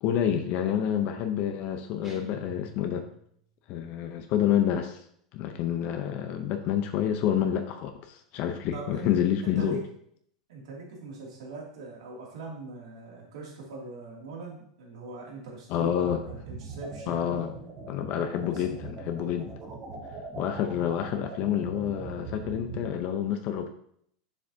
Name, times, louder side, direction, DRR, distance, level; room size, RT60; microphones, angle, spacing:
voice 1, 0.0-3.0 3.7-5.0 5.3-9.8 15.7-16.2 17.1-17.5 17.9-19.5 20.3-23.7, left 9 dB, 50° left, 6 dB, 0.8 m, -28 dB
sound 1, 2.0-3.4, right 1 dB, 15° right, 2.3 m, -48 dB
voice 2, 8.7-9.1 9.4-9.8 10.5-17.4 18.5-18.6, right 3 dB, 75° right, -3 dB, 2.7 m, -41 dB
sound 2, 16.0-22.9, right 3 dB, 45° right, 2.8 m, -41 dB
7.2 x 7.0 x 2.8 m, 0.67 s
hypercardioid pair, 120°, 3 cm